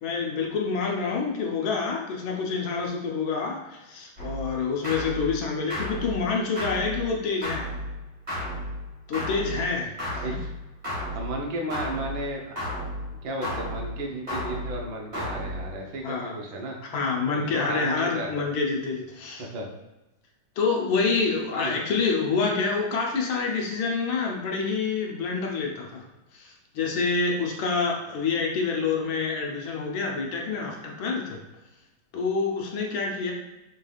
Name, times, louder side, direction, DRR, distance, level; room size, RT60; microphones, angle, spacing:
voice 1, 0.0-7.7 9.1-10.2 16.0-16.3 16.9-19.5 20.6-26.0 26.3-31.4 32.1-33.3, left 4 dB, 70° left, 0 dB, 1.4 m, -27 dB
sound 1, 4.2-15.9, equal, 25° right, 1.3 m, -34 dB
voice 2, 10.1-10.5 11.1-12.6 13.2-16.8 17.3-18.3 19.4-19.7 21.5-21.8, right 1 dB, 70° right, 1 dB, 1.4 m, -33 dB
5.3 x 3.2 x 2.3 m, 0.99 s
omnidirectional pair, 2.4 m